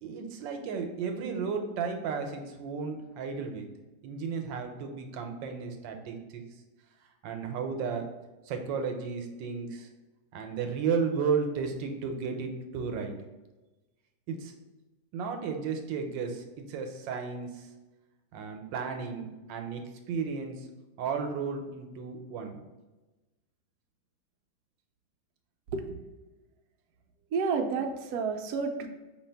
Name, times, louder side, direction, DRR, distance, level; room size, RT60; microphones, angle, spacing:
voice 1, 0.0-3.7 4.0-6.5 7.2-8.1 8.5-9.9 10.3-13.2 14.3-14.5 15.1-17.7 18.3-20.7 21.0-22.7, right 5 dB, 90° right, 5 dB, 1.3 m, -33 dB
voice 2, 27.3-28.9, right 5 dB, 70° right, 4 dB, 0.9 m, -30 dB
4.9 x 2.8 x 3.3 m, 1.1 s
omnidirectional pair, 2.0 m